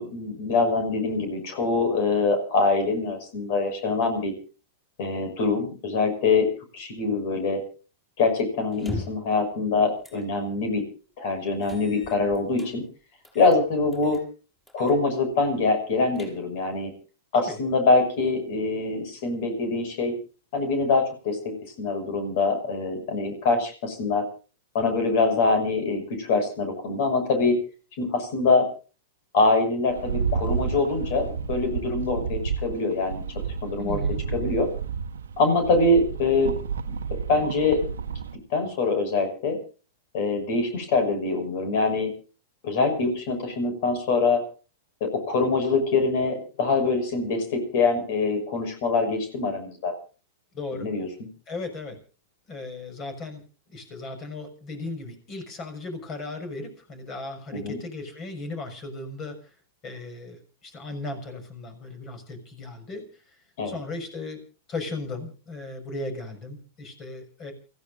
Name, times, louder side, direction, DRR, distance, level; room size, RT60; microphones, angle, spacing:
voice 1, 0.0-4.3 5.0-6.5 6.7-7.6 8.2-10.8 11.2-12.8 13.3-14.2 14.7-16.9 17.3-20.1 20.5-24.2 24.7-27.6 28.0-28.7 29.3-33.2 33.6-34.0 34.3-34.7 35.4-36.6 36.9-37.0 37.3-37.8 38.5-39.6 40.1-42.1 42.6-44.4 45.0-49.9 50.7-51.3 57.5-57.8 63.6-63.8, left 3 dB, 55° left, 7 dB, 6.3 m, -24 dB
sound 1, 8.7-9.3 10.0-10.3 10.7-10.8 11.6-12.7 13.2-13.6 13.9-14.3 14.7-15.0 15.3-15.4 15.9-16.7, left 1 dB, 10° left, 5.6 m, -39 dB
Rattle, 29.9-38.4, right 6 dB, 85° right, 1.2 m, -31 dB
voice 2, 33.8-34.2 50.5-50.9 51.5-52.0 52.5-53.4 53.7-59.5 59.8-63.4 63.6-67.5, left 2 dB, 30° left, 8 dB, 6.2 m, -36 dB
29.0 x 15.5 x 2.6 m, 0.36 s
hypercardioid pair, 115°, 0 cm